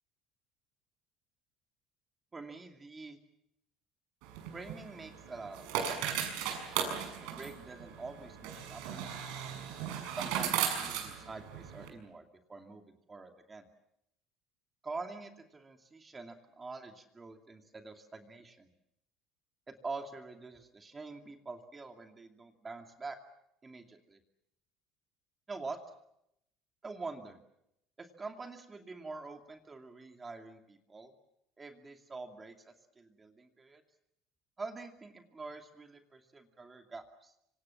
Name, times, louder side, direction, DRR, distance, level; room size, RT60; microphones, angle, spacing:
voice 1, 2.3-3.2 4.5-6.0 7.2-9.1 10.2-12.2 12.5-12.8 13.1-13.7 14.8-18.7 19.7-23.2 23.6-24.2 25.5-25.8 26.8-27.4 28.0-31.1 31.6-33.8 34.6-37.3, right 3 dB, 15° right, 5 dB, 2.5 m, -46 dB
sound 1, 4.2-11.9, right 8 dB, 80° right, 6.5 m, -37 dB
26.5 x 25.5 x 7.2 m, 0.79 s
cardioid pair, 145°, 0 cm